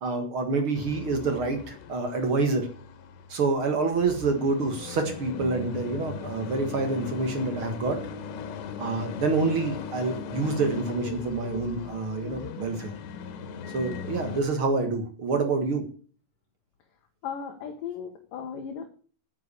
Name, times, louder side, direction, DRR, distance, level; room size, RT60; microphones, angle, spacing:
voice 1, 0.0-2.7 3.3-8.0 8.8-12.9 13.7-15.8, right 3 dB, 55° right, 6 dB, 1.5 m, -27 dB
sound 1, 0.7-14.4, left 6 dB, 85° left, 3.5 m, -39 dB
voice 2, 17.2-18.8, left 7 dB, 65° left, 4 dB, 2.7 m, -36 dB
9.6 x 8.6 x 8.4 m, 0.43 s
omnidirectional pair, 4.9 m